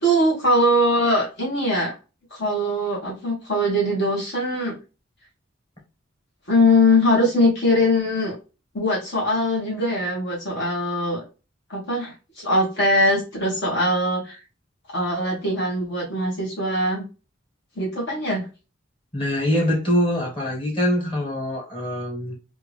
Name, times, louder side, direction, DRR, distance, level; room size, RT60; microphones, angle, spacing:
voice 1, 0.0-1.9 2.3-4.7 6.5-8.3 8.7-11.2 11.7-14.4 14.9-17.0 17.7-18.5, left 1 dB, 60° left, -5 dB, 1.6 m, -21 dB
voice 2, 19.1-22.4, equal, 25° left, -3 dB, 1.4 m, -23 dB
3.4 x 2.7 x 3.4 m, 0.32 s
head